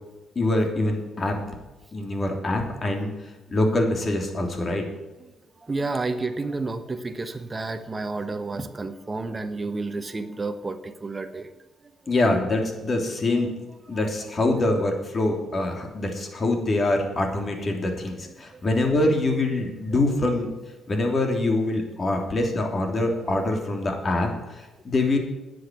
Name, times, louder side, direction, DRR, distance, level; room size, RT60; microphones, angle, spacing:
voice 1, 0.3-1.4 1.9-3.2 3.5-4.8 12.1-13.5 13.9-20.5 20.9-25.2, left 2 dB, 35° left, 3 dB, 3.2 m, -24 dB
voice 2, 5.6-11.5 13.9-14.0 18.5-18.6 23.1-23.5, right 3 dB, 25° right, 9 dB, 1.2 m, -31 dB
10.5 x 8.0 x 9.3 m, 1.1 s
cardioid pair, 90°, 0 cm